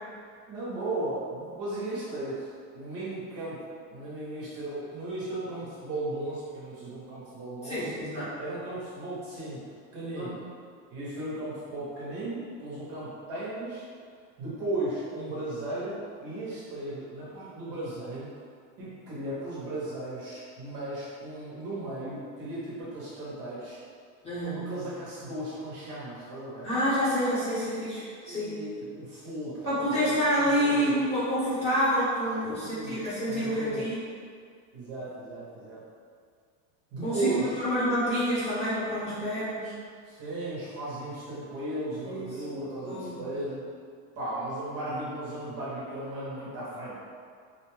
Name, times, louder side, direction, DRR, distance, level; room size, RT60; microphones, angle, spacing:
voice 1, 0.5-2.5 2.7-3.6 3.9-7.9 8.4-10.4 10.9-13.8 14.4-18.4 18.8-23.8 24.5-26.7 28.3-31.0 32.4-33.0 33.2-33.9 34.7-35.8 36.9-37.6 40.1-43.6 44.2-46.9, right 2 dB, 40° right, -8 dB, 0.7 m, -36 dB
voice 2, 7.6-8.3 10.1-10.5 24.2-24.6 26.6-28.6 29.7-34.0 37.0-39.7 42.0-42.3 42.8-43.2, equal, 15° left, -11 dB, 0.8 m, -28 dB
2.5 x 2.1 x 3.0 m, 2.1 s
supercardioid pair, 155°, 38 cm